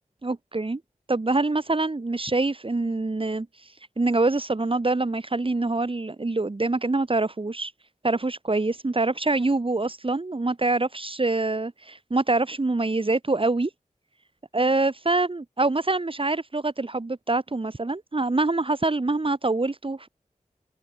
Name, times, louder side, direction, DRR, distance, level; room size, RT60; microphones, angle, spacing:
voice 1, 0.2-0.8 1.1-7.7 8.0-13.7 14.5-20.1, right 2 dB, 40° right, 4.0 m, -25 dB
open air
wide cardioid pair, 90°, 14 cm